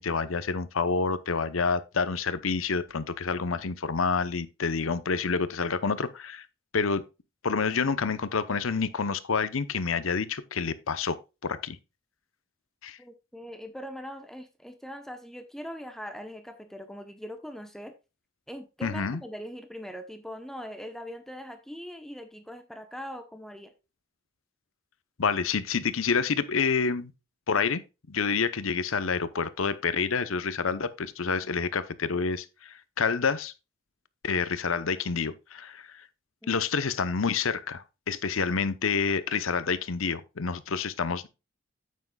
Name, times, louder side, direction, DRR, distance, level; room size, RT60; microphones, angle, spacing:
voice 1, 0.0-6.5 6.7-7.1 7.4-11.2 11.4-11.8 12.8-13.0 18.8-19.2 25.2-27.1 27.5-27.8 28.1-33.5 34.2-36.0 36.5-41.3, left 5 dB, 85° left, 0.8 m, -28 dB
voice 2, 13.0-17.9 18.5-23.7 36.4-36.6, equal, ahead, 0.8 m, -41 dB
9.2 x 8.4 x 2.3 m
head